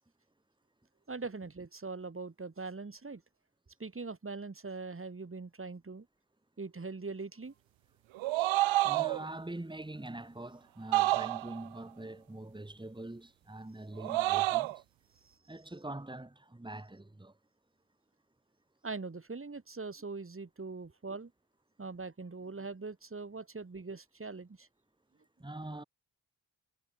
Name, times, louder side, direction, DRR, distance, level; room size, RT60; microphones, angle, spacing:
voice 1, 1.1-3.2 3.8-6.1 6.6-7.5 15.2-15.3 18.8-21.3 21.8-24.7, right 4 dB, 30° right, 5.0 m, -42 dB
sound 1, 8.1-9.3 10.9-11.7 14.0-14.8, right 17 dB, 90° right, 0.5 m, -29 dB
voice 2, 8.8-14.8 15.5-17.3 25.4-25.8, right 2 dB, 10° right, 3.4 m, -44 dB
cardioid pair, 90°, 45 cm